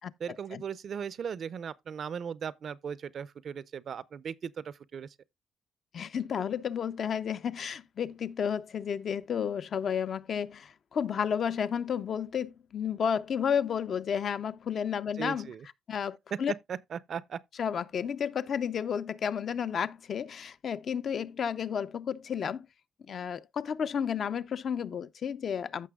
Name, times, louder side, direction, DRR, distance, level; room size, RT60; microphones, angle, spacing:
voice 1, 0.2-5.1 15.2-15.7 16.3-17.4, right 7 dB, 55° right, 0.5 m, -37 dB
voice 2, 5.9-15.5 15.9-16.5 17.6-22.7 23.1-25.9, left 7 dB, 50° left, 0.5 m, -32 dB
14.5 x 5.8 x 2.3 m
cardioid pair, 110°, 0 cm